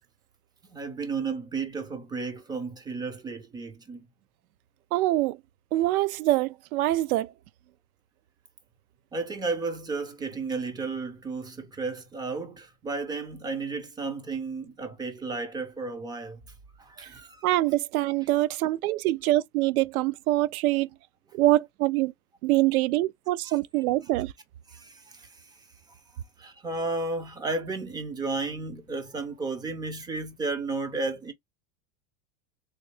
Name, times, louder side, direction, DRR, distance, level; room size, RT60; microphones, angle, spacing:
voice 1, 0.7-4.1 9.1-16.4 16.8-17.5 23.4-23.6 24.7-25.6 26.4-31.3, right 3 dB, 10° right, 0.3 m, -33 dB
voice 2, 4.9-5.4 5.7-7.3 17.4-20.9 21.3-22.1 22.4-24.3, right 16 dB, 80° right, 0.5 m, -24 dB
3.2 x 2.7 x 3.2 m
supercardioid pair, 135°, 43 cm